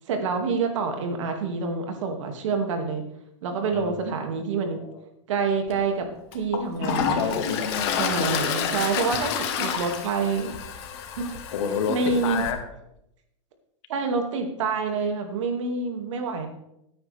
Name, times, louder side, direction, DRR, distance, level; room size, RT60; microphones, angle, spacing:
voice 1, 0.1-3.0 3.4-4.8 5.3-6.1 6.3-7.3 8.0-10.5 11.2-11.4 11.9-12.4 13.9-16.5, right 4 dB, 85° right, 4 dB, 2.4 m, -27 dB
Toilet flush, 5.7-5.8 6.3-12.5, left 7 dB, 55° left, 1.7 m, -29 dB
voice 2, 7.1-8.6 11.5-12.0 12.2-12.6, left 7 dB, 80° left, 5 dB, 2.0 m, -29 dB
15.0 x 9.0 x 3.5 m, 0.80 s
supercardioid pair, 160°, 16 cm